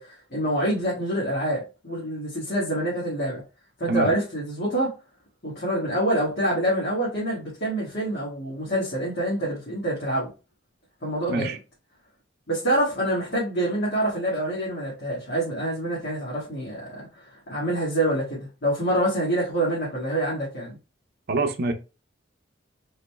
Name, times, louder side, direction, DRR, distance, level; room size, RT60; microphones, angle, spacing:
voice 1, 0.0-3.4 3.8-4.9 5.4-10.3 11.0-11.5 12.5-20.8, right 1 dB, 55° left, 1.6 m, -26 dB
voice 2, 21.3-21.7, right 3 dB, 55° right, 0.6 m, -25 dB
5.2 x 3.9 x 2.2 m
head